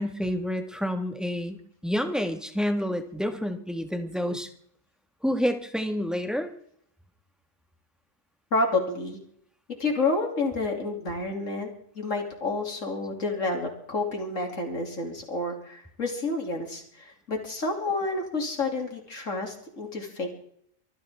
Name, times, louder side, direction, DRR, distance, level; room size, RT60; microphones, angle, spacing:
voice 1, 0.0-4.5 5.2-6.5, equal, ahead, 5 dB, 1.8 m, -29 dB
voice 2, 8.5-9.2 9.8-11.7 11.9-20.3, left 3 dB, 75° left, 2 dB, 3.4 m, -29 dB
25.0 x 15.0 x 3.7 m, 0.66 s
omnidirectional pair, 1.3 m